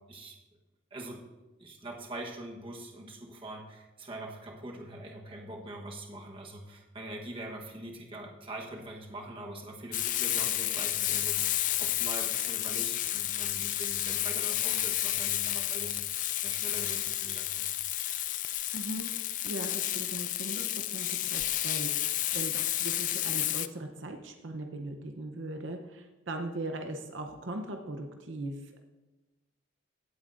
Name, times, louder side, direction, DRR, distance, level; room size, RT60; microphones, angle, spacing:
voice 1, 0.9-1.2 1.6-17.7, right 1 dB, 25° right, 1 dB, 1.2 m, -43 dB
Frying (food), 9.9-23.7, left 14 dB, 40° left, 0.3 m, -31 dB
voice 2, 18.7-28.8, right 1 dB, 70° right, 4 dB, 0.8 m, -39 dB
16.5 x 8.6 x 2.6 m, 1.2 s
head